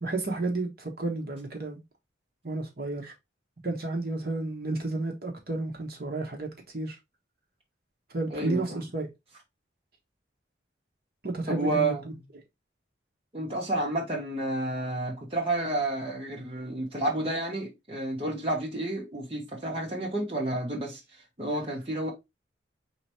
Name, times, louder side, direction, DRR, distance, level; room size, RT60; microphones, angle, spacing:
voice 1, 0.0-1.8 2.4-3.1 3.6-7.0 8.1-9.1 11.2-11.9, right 2 dB, 50° right, 1.2 m, -32 dB
voice 2, 8.3-8.8 11.5-12.2 13.3-21.0 21.4-22.1, right 2 dB, 30° right, 1.0 m, -30 dB
4.9 x 3.3 x 2.9 m
head